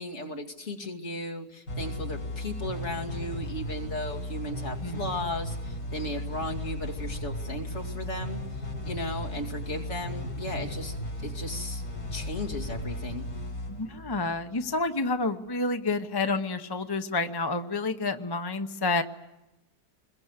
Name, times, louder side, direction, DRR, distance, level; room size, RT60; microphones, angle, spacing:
voice 1, 0.0-11.0 11.2-11.8 12.1-13.3, left 1 dB, 45° left, 0 dB, 2.7 m, -36 dB
sound 1, 1.7-15.0, left 1 dB, 85° left, 5.3 m, -36 dB
voice 2, 13.7-19.0, left 3 dB, 20° left, 7 dB, 0.7 m, -29 dB
27.5 x 22.0 x 8.1 m, 0.95 s
omnidirectional pair, 1.6 m